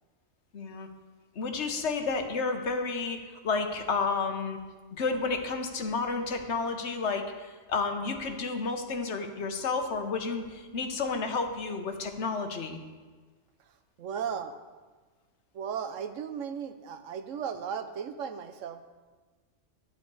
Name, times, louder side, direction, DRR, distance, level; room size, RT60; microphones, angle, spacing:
voice 1, 0.5-0.9 1.4-4.6 5.0-12.8, left 4 dB, 65° left, 6 dB, 1.2 m, -31 dB
voice 2, 14.0-14.6 15.5-18.8, right 7 dB, 80° right, 9 dB, 1.1 m, -36 dB
11.0 x 9.5 x 4.7 m, 1.4 s
omnidirectional pair, 1.3 m